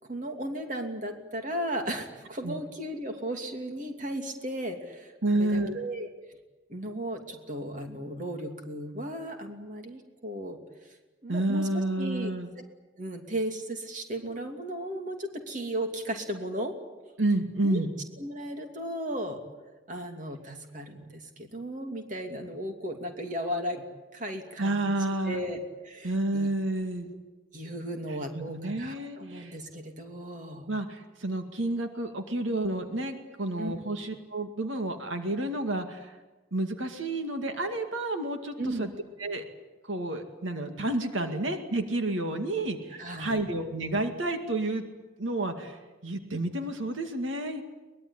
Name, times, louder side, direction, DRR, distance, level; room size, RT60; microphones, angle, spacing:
voice 1, 0.0-5.1 5.4-6.1 6.7-11.0 11.2-11.7 12.0-12.3 13.0-16.7 17.6-17.9 18.2-19.4 19.9-23.9 24.1-25.0 25.2-26.5 27.0-27.1 27.5-30.7 33.6-33.7 38.6-38.9 41.2-41.4 42.9-43.4, right 1 dB, 40° right, 4 dB, 2.8 m, -35 dB
voice 2, 5.2-5.8 11.3-12.5 17.2-17.9 24.6-25.4 26.0-27.1 28.1-29.5 30.7-36.2 36.5-38.9 39.2-39.4 39.9-44.8 45.2-47.6, right 2 dB, 85° right, 6 dB, 2.2 m, -30 dB
23.0 x 21.0 x 10.0 m, 1.2 s
head